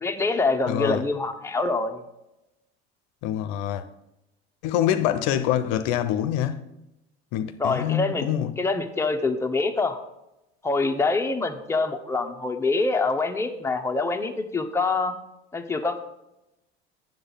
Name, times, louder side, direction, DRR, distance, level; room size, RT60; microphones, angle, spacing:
voice 1, 0.0-2.0 7.6-8.3 8.6-10.0 10.6-15.2 15.5-16.0, left 3 dB, 10° left, 0.8 m, -25 dB
voice 2, 0.7-1.0 3.2-3.8 4.6-6.6 7.3-8.5, left 11 dB, 65° left, 0.6 m, -25 dB
7.9 x 7.1 x 3.9 m
hypercardioid pair, 75°, 32 cm